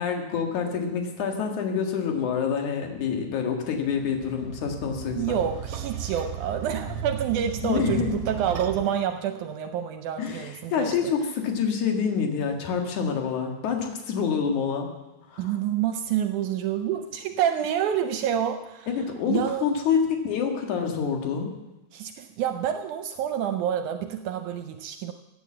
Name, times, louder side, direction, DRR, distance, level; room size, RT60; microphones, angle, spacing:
voice 1, 0.0-5.4 7.6-8.2 10.2-14.9 15.3-15.5 18.9-21.5, left 6 dB, 75° left, 3 dB, 3.2 m, -27 dB
sound 1, 3.7-8.8, right 8 dB, 55° right, 2.2 m, -36 dB
voice 2, 5.2-11.0 15.4-18.9 19.3-19.7 21.9-25.1, right 9 dB, 80° right, 8 dB, 2.1 m, -28 dB
Keyboard (musical), 6.9-9.1, right 4 dB, 90° left, 5.5 m, -41 dB
16.5 x 9.1 x 7.6 m, 0.99 s
omnidirectional pair, 3.5 m